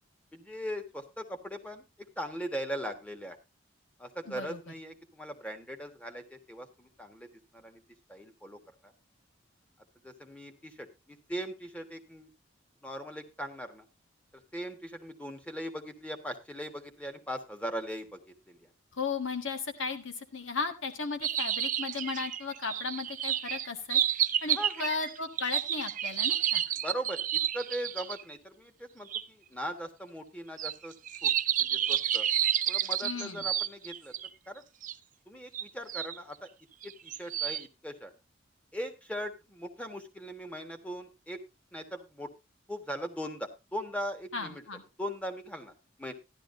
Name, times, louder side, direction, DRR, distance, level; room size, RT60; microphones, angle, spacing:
voice 1, 0.3-1.8 2.2-3.4 4.0-7.3 7.5-7.8 8.1-8.6 10.0-12.3 12.8-13.8 14.5-18.7 24.5-24.8 26.8-30.9 31.2-31.3 31.6-32.3 32.7-34.1 34.5-34.6 35.3-36.5 36.8-38.1 38.7-41.4 41.7-42.3 42.7-44.6 45.0-45.7 46.0-46.1, equal, 5° left, 6 dB, 1.4 m, -39 dB
voice 2, 4.2-4.6 18.9-24.0 24.4-26.6 33.0-33.4 44.3-44.8, left 4 dB, 80° left, 7 dB, 1.6 m, -35 dB
sound 1, 21.2-28.2 29.1-29.2 30.6-34.3 34.8-34.9 35.5-36.2 36.8-37.6, right 10 dB, 40° right, 0.5 m, -30 dB
13.5 x 11.5 x 2.6 m, 0.25 s
head